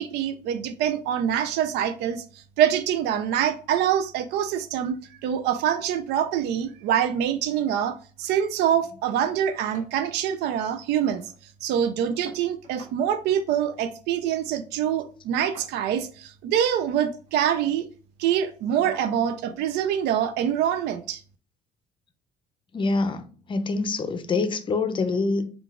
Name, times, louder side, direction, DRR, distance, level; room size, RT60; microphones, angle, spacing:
voice 1, 0.0-11.2 11.6-17.9 18.2-21.2, right 9 dB, 80° right, 0.4 m, -25 dB
sound 1, 9.2-9.5 9.7-10.0 10.3-10.4 10.7-11.4 12.3-13.0 14.2-14.4 15.4-16.1 17.1-17.4 17.9-18.1 18.8-19.2 20.4-20.5 21.0-21.1, right 3 dB, 50° right, 1.8 m, -48 dB
voice 2, 22.7-25.5, left 3 dB, 30° left, 0.5 m, -25 dB
3.7 x 2.3 x 3.6 m
cardioid pair, 110°, 17 cm